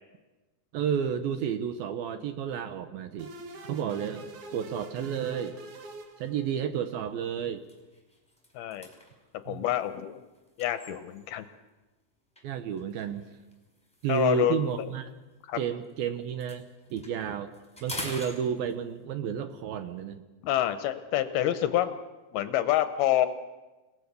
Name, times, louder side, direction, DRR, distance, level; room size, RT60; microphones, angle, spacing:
voice 1, 0.7-3.3 3.6-4.3 4.5-5.6 6.2-7.7 9.5-9.6 12.4-13.3 14.0-15.1 15.6-16.6 16.9-17.5 17.8-20.2, right 8 dB, 70° right, 9 dB, 2.4 m, -31 dB
sound 1, 3.2-6.8, right 2 dB, 50° right, 3.0 m, -45 dB
sound 2, 6.4-6.6 7.1-7.2 7.6-11.5 12.4-15.9 16.2-19.1, left 1 dB, ahead, 4.3 m, -46 dB
voice 2, 8.6-8.9 9.5-10.2 10.6-11.5 14.1-14.6 15.5-15.6 20.4-22.0 22.3-23.3, left 12 dB, 75° left, 11 dB, 2.5 m, -27 dB
29.5 x 18.0 x 6.8 m, 1.2 s
omnidirectional pair, 5.0 m